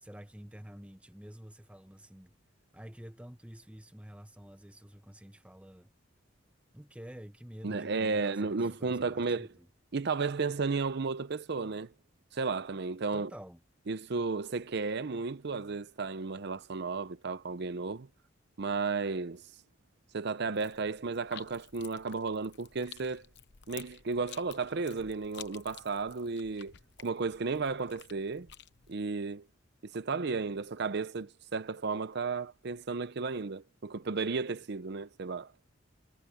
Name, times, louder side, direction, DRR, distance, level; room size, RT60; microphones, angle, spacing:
voice 1, 0.0-2.3 2.7-5.9 6.7-9.7 13.1-13.6, equal, 5° right, 1.3 m, -49 dB
voice 2, 7.6-9.5 9.9-11.9 12.3-13.3 13.9-18.1 18.6-19.5 20.1-23.2 23.7-26.7 27.0-28.5 28.9-29.4 29.8-35.7, right 4 dB, 60° right, 0.6 m, -33 dB
sound 1, 20.5-29.0, left 10 dB, 60° left, 0.9 m, -52 dB
head